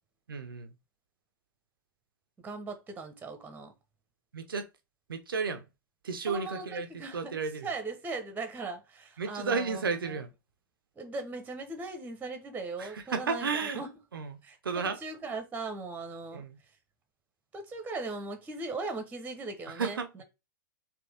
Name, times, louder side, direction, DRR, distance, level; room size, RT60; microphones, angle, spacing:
voice 1, 0.3-0.7 4.3-4.7 5.1-5.6 6.0-6.9 7.1-7.7 9.2-10.3 12.8-13.8 14.1-15.0 16.3-16.6 19.7-20.2, right 5 dB, 85° right, 0.7 m, -33 dB
voice 2, 2.4-3.7 6.3-10.2 11.0-13.9 14.4-14.6 14.8-16.4 17.5-20.2, right 3 dB, 15° right, 1.0 m, -39 dB
4.4 x 2.9 x 3.5 m
hypercardioid pair, 105°, 11 cm